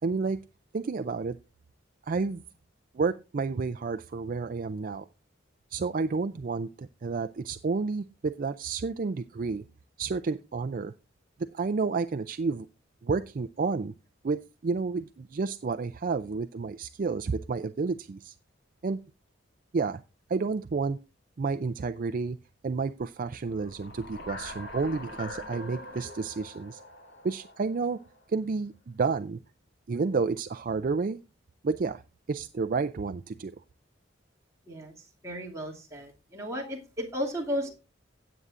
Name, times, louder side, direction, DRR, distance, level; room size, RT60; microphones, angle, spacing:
voice 1, 0.0-0.4 0.7-1.4 2.1-2.4 2.9-5.1 5.7-9.6 10.0-10.9 11.5-12.7 13.0-13.9 14.2-18.3 18.8-19.0 19.7-20.0 20.3-21.0 21.4-22.4 22.6-26.8 27.2-28.0 28.3-29.4 29.9-31.2 31.6-32.0 32.3-33.5, right 4 dB, 45° right, 11 dB, 0.4 m, -30 dB
sound 1, 23.5-28.2, left 2 dB, 60° left, 2.7 m, -43 dB
voice 2, 35.2-37.7, equal, 15° right, -2 dB, 2.4 m, -34 dB
17.0 x 8.0 x 2.5 m, 0.29 s
head